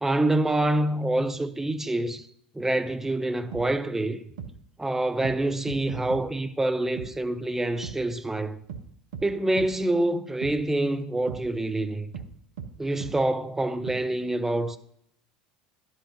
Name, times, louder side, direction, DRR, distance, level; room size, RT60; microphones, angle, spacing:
voice 1, 0.0-2.3 2.5-4.3 4.8-8.6 9.2-12.1 12.8-14.8, right 1 dB, 10° right, 0.6 m, -26 dB
sound 1, 3.5-3.7 4.4-4.5 5.2-5.4 5.7-6.2 7.0-7.1 7.8-8.0 8.7-8.8 9.1-9.3 9.6-9.7 10.4-10.6 11.3-11.4 12.1-12.3 12.6-12.7 13.0-13.1 13.9-14.0, right 7 dB, 75° right, 0.8 m, -37 dB
11.0 x 5.8 x 2.8 m
hypercardioid pair, 75°, 4 cm